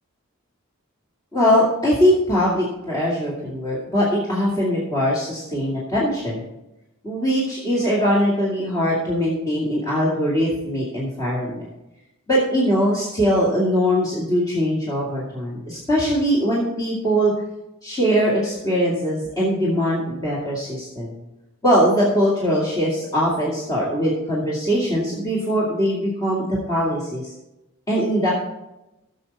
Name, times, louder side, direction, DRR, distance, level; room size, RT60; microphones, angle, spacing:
voice 1, 1.3-6.4 7.0-11.7 12.3-17.3 17.8-21.1 21.6-27.3 27.9-28.3, equal, 15° left, -6 dB, 2.3 m, -21 dB
15.0 x 7.2 x 4.2 m, 0.93 s
head